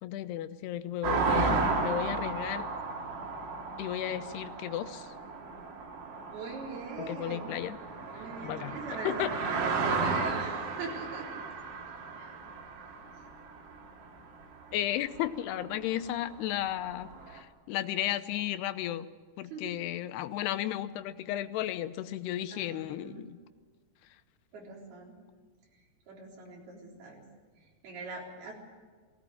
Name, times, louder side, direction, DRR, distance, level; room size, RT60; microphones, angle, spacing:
voice 1, 0.0-2.7 3.8-5.1 7.0-7.8 8.4-8.8 9.1-9.3 14.7-19.1 19.4-23.4, left 12 dB, 80° left, 11 dB, 2.8 m, -34 dB
sound 1, 1.0-14.1 14.9-15.0 15.1-17.4, right 4 dB, 85° right, 4.6 m, -34 dB
voice 2, 6.3-7.5 8.1-11.4 12.2-12.4 19.4-19.7 22.5-23.3 24.5-25.2 25.7-27.3 27.6-28.5, right 3 dB, 65° right, -2 dB, 5.8 m, -42 dB
18.5 x 16.5 x 9.9 m, 1.4 s
omnidirectional pair, 4.7 m